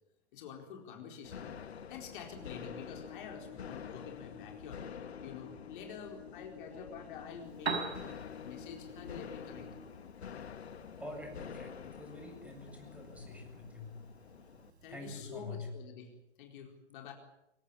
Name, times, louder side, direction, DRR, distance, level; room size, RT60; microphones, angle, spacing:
voice 1, 0.3-1.5 1.9-4.8 5.2-8.0 8.4-9.7 14.8-17.1, left 6 dB, 50° left, 3 dB, 4.4 m, -48 dB
sound 1, 1.2-14.7, left 7 dB, 70° left, 1.9 m, -48 dB
sound 2, 2.3-9.9, left 7 dB, 30° left, 5.3 m, -53 dB
Piano, 7.4-15.4, right 4 dB, 75° right, 5.5 m, -45 dB
voice 2, 11.0-13.9 14.9-15.7, left 2 dB, 5° right, 2 dB, 7.7 m, -46 dB
25.5 x 17.0 x 9.8 m, 0.89 s
figure-of-eight pair, 115°, 34 cm